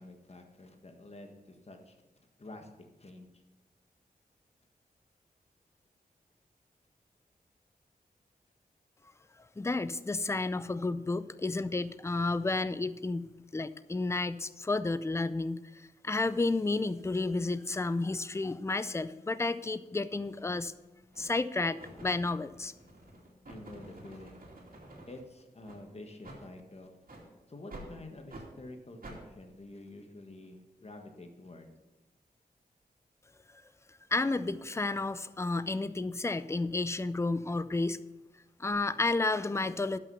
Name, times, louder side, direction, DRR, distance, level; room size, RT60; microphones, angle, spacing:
voice 1, 0.0-2.7 3.0-3.3 23.4-24.4 25.1-27.0 27.5-31.7, left 2 dB, 40° left, 4 dB, 1.5 m, -49 dB
voice 2, 9.6-20.7 21.2-22.7 34.1-38.0 38.6-40.0, left 3 dB, 15° left, 14 dB, 0.4 m, -31 dB
Bass guitar, 17.2-23.5, left 1 dB, 20° right, 3.1 m, -58 dB
sound 1, 20.3-20.4 21.1-21.4 21.8-25.2 25.6-25.8 26.2-26.4 27.0-27.2 27.7-27.9 28.3-28.5 29.0-29.2, right 2 dB, 65° right, 2.6 m, -49 dB
12.0 x 6.1 x 5.5 m, 1.0 s
wide cardioid pair, 75°, 16 cm